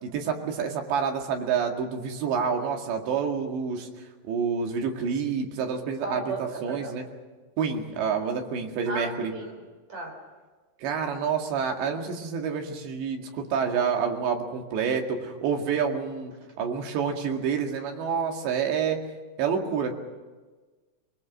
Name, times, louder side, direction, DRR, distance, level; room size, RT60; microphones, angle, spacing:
voice 1, 0.0-3.9 4.2-7.0 7.6-9.3 10.8-19.0 19.4-19.9, right 6 dB, 80° right, 3 dB, 4.3 m, -28 dB
voice 2, 6.0-6.9 8.9-9.6 9.9-10.2, right 2 dB, 40° right, 2 dB, 5.3 m, -35 dB
25.0 x 21.5 x 6.4 m, 1.3 s
omnidirectional pair, 5.0 m